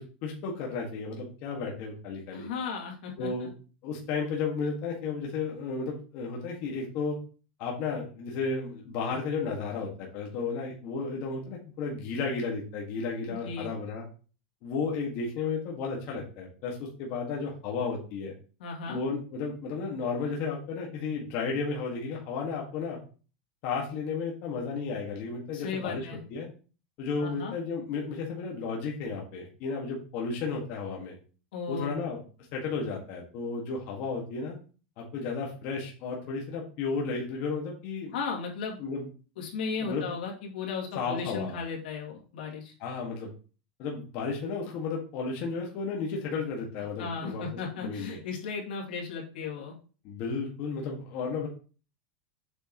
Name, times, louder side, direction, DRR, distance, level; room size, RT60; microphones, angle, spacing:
voice 1, 0.0-2.5 3.2-3.5 3.8-7.2 7.6-14.1 14.6-18.3 18.9-23.0 23.6-26.5 27.0-31.1 31.7-32.2 32.5-34.6 35.0-38.1 38.8-39.1 39.8-40.1 40.9-41.6 42.8-43.3 43.8-47.4 47.8-48.2 50.0-51.5, left 4 dB, 40° left, -1 dB, 1.8 m, -33 dB
voice 2, 2.3-3.5 13.3-13.7 18.6-19.0 25.5-26.2 27.2-27.5 31.5-32.0 38.1-38.8 39.4-42.7 47.0-49.7, left 5 dB, 80° left, -1 dB, 2.6 m, -35 dB
8.0 x 6.3 x 3.1 m, 0.37 s
supercardioid pair, 170°, 5 cm